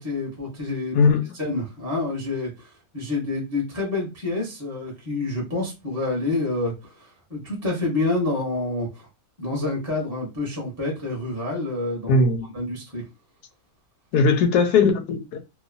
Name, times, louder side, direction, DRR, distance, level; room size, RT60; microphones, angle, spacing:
voice 1, 0.0-1.0 1.4-9.1 9.4-12.2 12.5-13.0, left 2 dB, 10° right, 0.9 m, -28 dB
voice 2, 0.9-1.3 12.1-12.5 14.1-15.4, left 4 dB, 70° left, 1.1 m, -19 dB
3.0 x 2.2 x 2.5 m
omnidirectional pair, 1.9 m